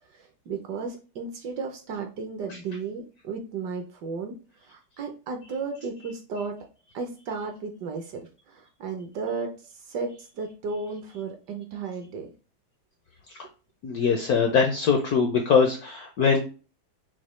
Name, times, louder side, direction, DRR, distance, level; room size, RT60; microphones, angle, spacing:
voice 1, 0.1-4.4 4.7-6.6 6.9-9.5 9.9-12.3 14.2-14.3, right 4 dB, 70° right, 4 dB, 1.1 m, -34 dB
voice 2, 13.8-16.4, left 5 dB, 75° left, 3 dB, 0.8 m, -22 dB
6.1 x 2.1 x 3.0 m, 0.35 s
omnidirectional pair, 2.2 m